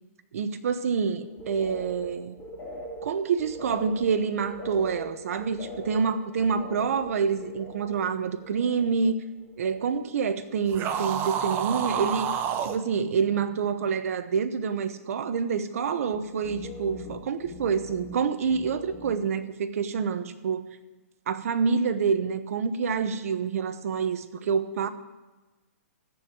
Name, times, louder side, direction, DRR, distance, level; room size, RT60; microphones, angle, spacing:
voice 1, 0.3-2.4 3.0-9.2 9.6-12.3 12.6-20.6 21.3-24.9, right 6 dB, 65° right, 10 dB, 1.0 m, -27 dB
sound 1, 1.2-10.1 10.4-11.1 11.4-12.1 12.4-12.8 16.1-19.3, left 1 dB, 20° left, 2.7 m, -43 dB
sound 2, 10.7-12.8, right 8 dB, 25° right, 0.7 m, -29 dB
14.5 x 4.8 x 8.9 m, 1.2 s
hypercardioid pair, 150°, 8 cm